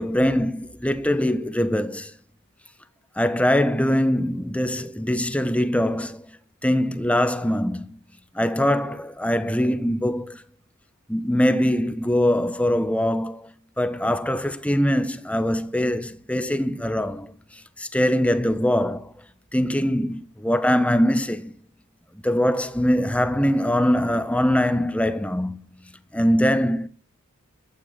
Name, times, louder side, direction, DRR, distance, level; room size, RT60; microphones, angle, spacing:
voice 1, 0.0-2.1 3.2-6.3 6.6-8.0 8.3-10.4 11.1-19.1 19.5-21.6 22.2-25.6 26.1-26.9, equal, 5° left, 1.3 m, -22 dB
14.5 x 13.0 x 4.3 m
head